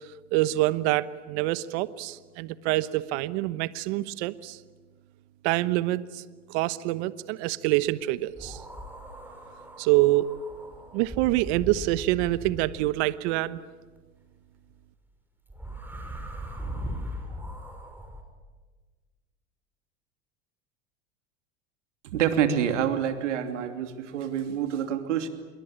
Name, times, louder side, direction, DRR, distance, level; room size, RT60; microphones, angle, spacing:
voice 1, 0.3-4.6 5.4-6.2 6.5-8.6 9.8-10.2 10.9-13.6, right 17 dB, 70° right, 15 dB, 1.2 m, -26 dB
sound 1, 8.3-13.1 15.5-18.2, equal, 5° right, 5.9 m, -39 dB
voice 2, 22.0-25.3, right 9 dB, 90° right, 7 dB, 2.9 m, -27 dB
27.5 x 22.0 x 8.8 m, 1.4 s
supercardioid pair, 105°, 35 cm